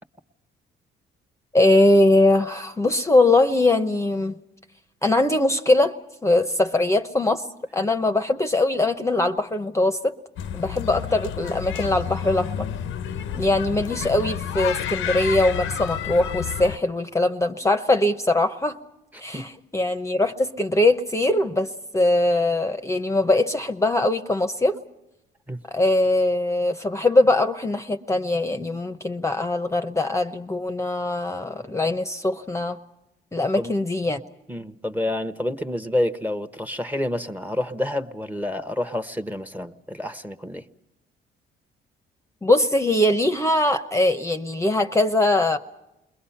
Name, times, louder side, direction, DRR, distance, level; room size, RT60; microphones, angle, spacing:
voice 1, 1.5-4.4 5.0-5.9 6.2-7.5 7.7-10.1 10.5-12.7 13.3-18.8 19.2-24.8 25.7-32.8 33.3-34.2 42.4-45.6, left 2 dB, 15° left, 0.9 m, -21 dB
sound 1, 10.4-16.8, left 9 dB, 80° left, 0.8 m, -30 dB
voice 2, 34.5-40.6, left 1 dB, 10° right, 1.1 m, -28 dB
28.5 x 21.5 x 5.7 m
cardioid pair, 90°, 20 cm